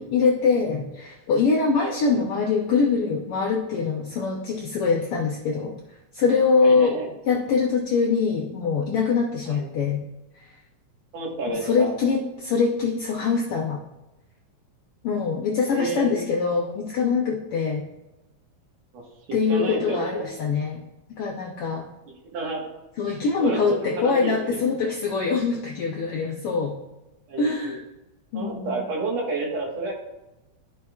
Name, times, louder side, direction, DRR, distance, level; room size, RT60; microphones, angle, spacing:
voice 1, 0.0-5.7 6.1-10.0 11.5-13.8 15.0-17.8 19.3-20.8 21.2-21.8 23.0-26.8 27.4-27.8 28.3-28.8, left 5 dB, 75° left, 0 dB, 1.4 m, -23 dB
voice 2, 6.6-7.1 9.5-9.7 11.1-11.9 15.6-16.1 18.9-19.0 19.3-20.3 22.3-22.6 23.4-24.6 27.3-27.5 28.3-29.9, right 3 dB, 65° right, -1 dB, 2.5 m, -30 dB
12.5 x 5.1 x 2.3 m, 0.99 s
omnidirectional pair, 3.3 m